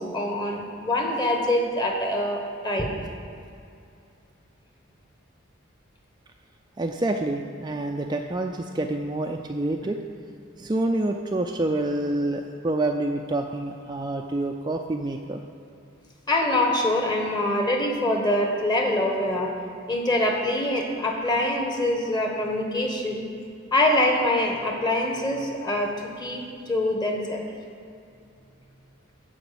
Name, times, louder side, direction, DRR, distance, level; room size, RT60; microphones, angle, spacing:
voice 1, 0.0-2.9 16.3-19.5 19.9-23.2 23.7-27.4, left 1 dB, 20° left, 1 dB, 1.4 m, -24 dB
voice 2, 6.8-10.0 10.6-15.4, right 2 dB, 20° right, 3 dB, 0.4 m, -27 dB
14.5 x 5.1 x 6.9 m, 2.5 s
head